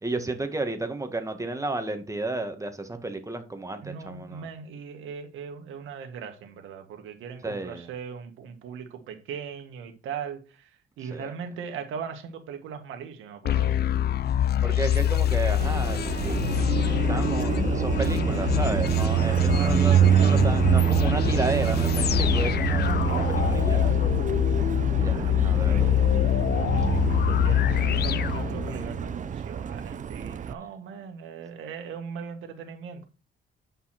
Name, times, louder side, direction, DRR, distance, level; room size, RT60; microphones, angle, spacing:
voice 1, 0.0-4.5 7.4-7.9 11.1-11.3 14.6-16.5 17.1-24.1 25.0-25.9 30.6-30.7, right 2 dB, 15° right, 1.8 m, -32 dB
voice 2, 3.8-10.4 11.0-13.7 16.3-16.6 19.5-19.8 22.8-23.5 26.7-33.1, right 7 dB, 85° right, 1.9 m, -39 dB
sound 1, 13.4-29.1, left 10 dB, 55° left, 0.5 m, -25 dB
Car passing by, 15.6-30.5, right 9 dB, 40° right, 0.6 m, -26 dB
9.4 x 5.6 x 4.4 m
cardioid pair, 90°, 20 cm